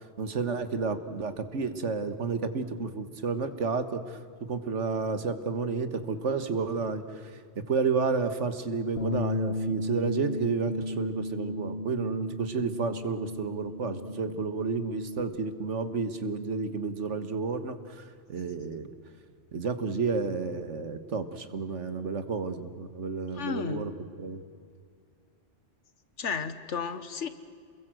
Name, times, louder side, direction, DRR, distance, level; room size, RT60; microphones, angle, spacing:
voice 1, 0.2-4.2 4.5-7.0 7.6-18.0 18.3-18.9 19.5-23.9 24.2-24.4, right 4 dB, 85° right, 10 dB, 1.8 m, -31 dB
Bass guitar, 9.0-15.2, left 1 dB, 60° left, 1.4 m, -34 dB
voice 2, 23.3-23.9 26.2-27.3, left 6 dB, 85° left, 12 dB, 1.6 m, -33 dB
28.5 x 22.0 x 7.7 m, 2.2 s
omnidirectional pair, 1.2 m